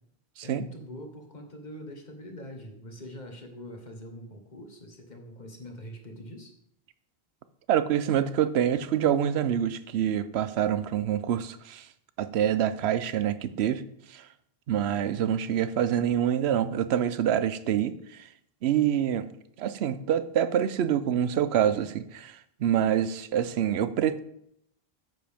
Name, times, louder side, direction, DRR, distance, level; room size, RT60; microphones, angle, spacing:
voice 1, 0.4-6.5, equal, 45° left, 3 dB, 1.4 m, -43 dB
voice 2, 7.7-11.9 12.2-13.8 14.1-14.3 14.7-18.3 18.6-19.3 19.6-24.2, right 10 dB, 80° right, 13 dB, 0.9 m, -26 dB
9.5 x 7.6 x 3.5 m, 0.74 s
omnidirectional pair, 1.1 m